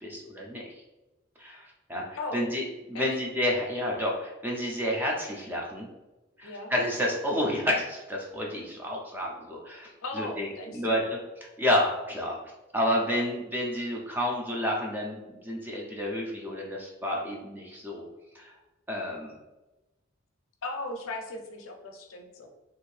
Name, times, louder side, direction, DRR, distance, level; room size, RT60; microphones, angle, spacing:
voice 1, 0.0-0.6 1.4-5.9 6.4-11.2 11.6-12.4 12.7-18.0 18.3-18.5 18.9-19.3, left 1 dB, 10° right, -1 dB, 0.4 m, -30 dB
voice 2, 2.1-2.5 2.9-3.1 6.4-6.7 10.0-11.1 20.6-22.5, left 2 dB, 75° left, 3 dB, 0.5 m, -37 dB
2.7 x 2.5 x 3.2 m, 1.0 s
head